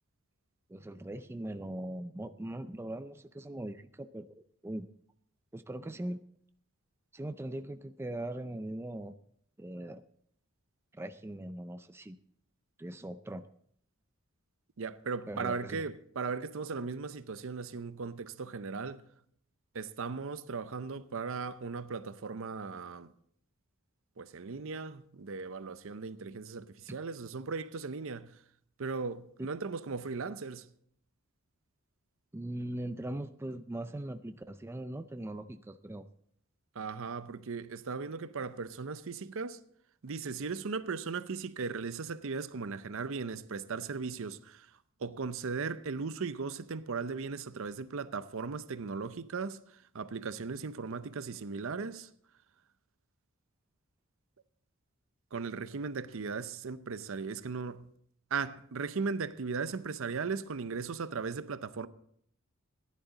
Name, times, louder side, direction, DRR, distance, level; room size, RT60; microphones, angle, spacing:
voice 1, 0.7-4.9 5.5-6.2 7.1-9.1 9.6-10.0 10.9-12.2 12.8-13.5 15.3-15.9 32.3-36.1, right 1 dB, 10° right, 0.4 m, -40 dB
voice 2, 14.8-19.0 19.7-23.1 24.2-28.4 28.8-30.7 36.7-39.6 40.0-52.1 55.3-57.9 58.3-61.9, right 4 dB, 65° right, 0.6 m, -37 dB
15.5 x 10.5 x 4.0 m
head